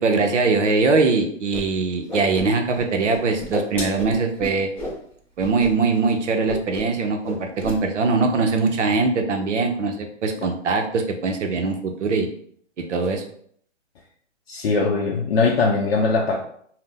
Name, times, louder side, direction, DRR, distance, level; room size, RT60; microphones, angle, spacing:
voice 1, 0.0-4.7 5.4-12.3 12.9-13.2, right 4 dB, 70° right, 4 dB, 0.6 m, -22 dB
Whoosh swoosh swish, 1.5-1.6 1.9-2.8 3.1-5.0 5.4-5.7 5.9-6.1 6.4-7.0 7.2-7.8, left 1 dB, 5° left, 0.9 m, -31 dB
voice 2, 14.5-16.4, left 4 dB, 55° left, 0 dB, 0.5 m, -20 dB
2.7 x 2.0 x 3.6 m, 0.63 s
figure-of-eight pair, 135°, 37 cm